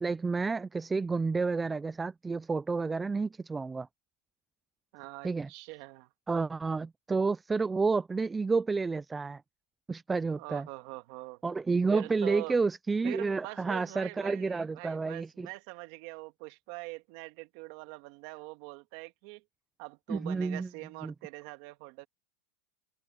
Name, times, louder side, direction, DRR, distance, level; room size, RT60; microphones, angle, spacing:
voice 1, 0.0-3.9 5.2-5.5 6.3-9.4 9.9-10.7 11.4-15.5 20.1-20.7 21.0-21.1, right 4 dB, 15° right, 0.3 m, -30 dB
voice 2, 4.9-6.1 10.3-11.4 11.9-12.6 13.0-19.4 19.8-22.1, right 23 dB, 60° right, 1.8 m, -43 dB
supercardioid pair, 135°, 0 cm